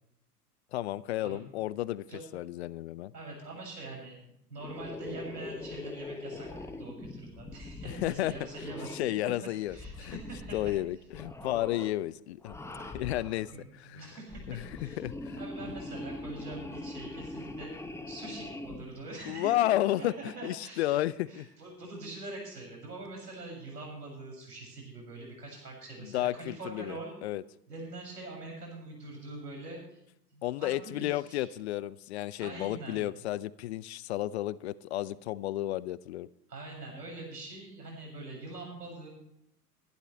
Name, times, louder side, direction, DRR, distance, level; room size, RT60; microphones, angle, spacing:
voice 1, 0.7-2.0 2.3-3.1 7.8-8.3 8.9-10.2 10.5-14.1 14.5-15.7 19.3-21.5 26.0-27.4 30.4-36.3, left 14 dB, 45° left, 20 dB, 0.5 m, -32 dB
voice 2, 3.1-9.2 9.7-10.6 13.5-15.0 15.4-17.7 18.1-19.6 20.0-21.0 21.3-27.2 27.7-30.0 30.3-31.6 32.4-33.1 36.5-39.1, right 2 dB, 80° right, -1 dB, 7.3 m, -44 dB
sound 1, 4.6-9.2 9.7-10.8 11.1-11.9 12.4-13.4 14.1-18.8, left 2 dB, 5° left, 1.1 m, -42 dB
23.0 x 11.5 x 3.4 m, 0.78 s
figure-of-eight pair, 90°, 47 cm